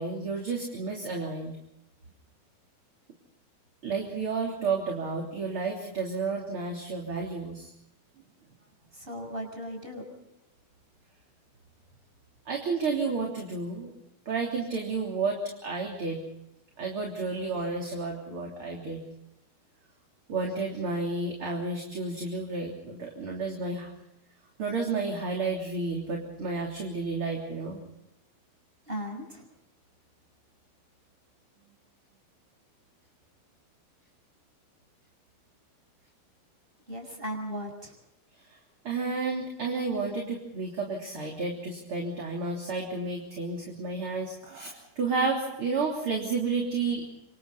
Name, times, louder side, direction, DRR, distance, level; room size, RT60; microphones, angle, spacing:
voice 1, 0.0-1.5 3.8-7.7 12.5-13.9 14.3-16.2 16.8-19.0 20.3-23.9 24.6-27.8 38.5-38.6 38.8-47.1, right 4 dB, 35° right, 0 dB, 3.8 m, -31 dB
voice 2, 8.9-10.1 28.9-29.4 36.9-38.0, equal, 15° right, 3 dB, 6.9 m, -37 dB
27.5 x 26.5 x 4.1 m, 0.86 s
omnidirectional pair, 4.4 m